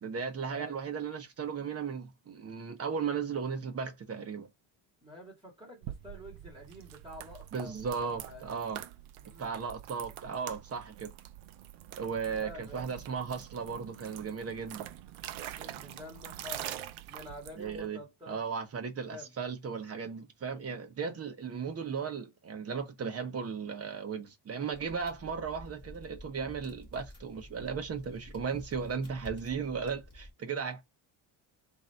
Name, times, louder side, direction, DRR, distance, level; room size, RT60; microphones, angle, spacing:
voice 1, 0.0-4.5 7.5-8.8 9.4-11.1 12.0-14.9 17.6-18.0 18.3-30.8, right 6 dB, 30° right, 0.9 m, -36 dB
voice 2, 5.0-8.6 9.2-9.5 12.3-12.9 15.5-16.8 17.1-18.4 19.0-19.3, left 1 dB, 10° right, 2.0 m, -48 dB
sound 1, 5.8-17.9, right 12 dB, 90° right, 0.7 m, -45 dB
sound 2, 24.7-30.3, left 1 dB, 10° left, 2.2 m, -50 dB
3.8 x 2.7 x 4.4 m
cardioid pair, 125°, 47 cm